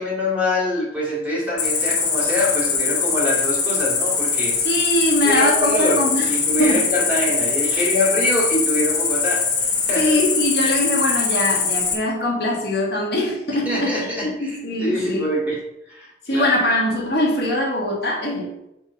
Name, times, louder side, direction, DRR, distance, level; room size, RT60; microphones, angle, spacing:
voice 1, 0.0-4.6 5.2-10.2 13.7-15.6 15.8-16.6, left 1 dB, 10° right, -6 dB, 2.3 m, -24 dB
Cricket, 1.6-11.9, left 5 dB, 75° left, 1.1 m, -22 dB
voice 2, 4.6-6.3 6.6-6.8 7.7-7.9 9.9-15.3 16.2-18.7, left 1 dB, 60° left, -3 dB, 1.4 m, -22 dB
4.5 x 3.9 x 5.6 m, 0.84 s
head